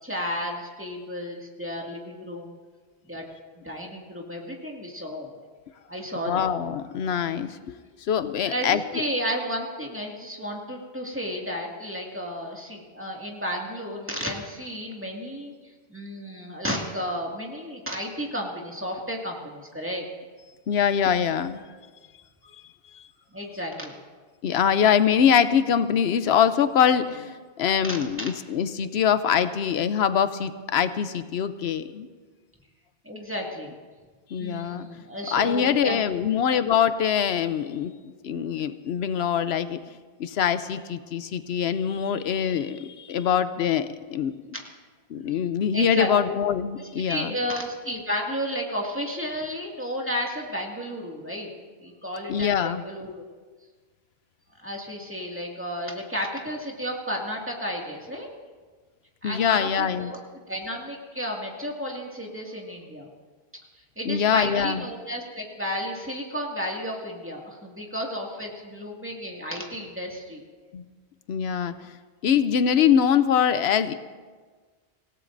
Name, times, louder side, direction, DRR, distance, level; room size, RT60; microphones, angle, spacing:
voice 1, 0.0-2.5 3.1-3.3 3.6-5.4 5.9-6.5 8.5-15.5 15.9-20.1 23.3-24.0 27.8-28.3 33.0-33.7 34.4-36.0 45.7-46.1 46.8-51.5 51.8-53.2 54.6-58.3 59.2-60.2 60.5-63.1 64.0-70.4, equal, 10° right, -1 dB, 2.1 m, -32 dB
voice 2, 6.3-7.7 8.1-8.8 20.7-21.6 22.9-23.0 24.4-32.1 34.3-34.9 35.3-37.9 38.2-39.8 40.2-44.3 45.1-47.4 52.3-52.8 59.2-60.1 64.0-64.8 70.7-70.8 71.3-71.7 72.2-73.9, left 8 dB, 85° left, 12 dB, 0.9 m, -23 dB
26.0 x 16.5 x 2.6 m, 1.4 s
omnidirectional pair, 1.1 m